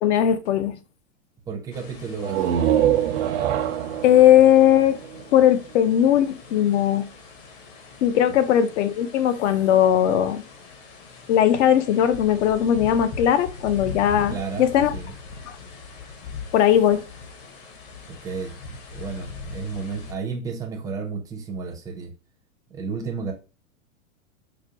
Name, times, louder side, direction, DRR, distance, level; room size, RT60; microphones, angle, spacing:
voice 1, 0.0-0.8 4.0-5.0 5.3-7.1 8.0-10.4 11.3-14.9 16.5-17.0, left 10 dB, 60° left, 0.6 m, -18 dB
voice 2, 1.5-2.5 14.3-15.1 18.2-18.6 18.9-22.1 22.7-23.3, right 5 dB, 10° right, 0.5 m, -32 dB
sound 1, 1.7-20.1, left 3 dB, 40° left, 1.0 m, -41 dB
sound 2, 2.1-5.8, right 10 dB, 60° right, 0.6 m, -24 dB
5.0 x 2.2 x 2.8 m
hypercardioid pair, 130°, 40 cm